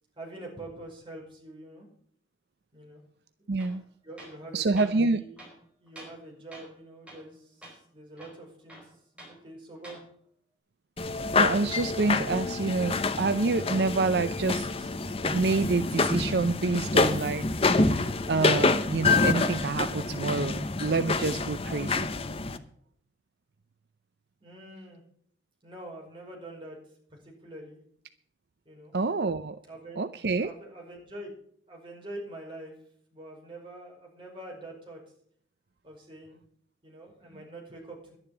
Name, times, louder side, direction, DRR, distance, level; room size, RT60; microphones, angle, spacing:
voice 1, 0.2-1.9 2.7-3.0 4.0-5.4 5.8-8.9 9.2-10.0 24.4-25.0 25.6-26.8 27.1-27.8 28.6-28.9 29.7-30.1 30.4-31.3 31.7-32.7 33.1-35.0 35.8-36.4 36.8-38.2, right 1 dB, 30° right, -1 dB, 5.1 m, -45 dB
voice 2, 3.5-3.8 4.5-5.2 11.4-14.9 15.3-22.1 28.9-29.6 30.0-30.5, right 3 dB, 60° right, 11 dB, 0.5 m, -28 dB
Tools, 3.6-3.8 4.2-4.4 4.8-4.9 5.4-6.2 6.5-6.8 7.1-7.3 7.6-7.8 8.2-9.4 9.8-10.0, right 1 dB, 5° right, 4.8 m, -48 dB
sound 1, 11.0-22.6, left 3 dB, 30° left, 0.8 m, -27 dB
11.5 x 11.0 x 6.0 m, 0.63 s
head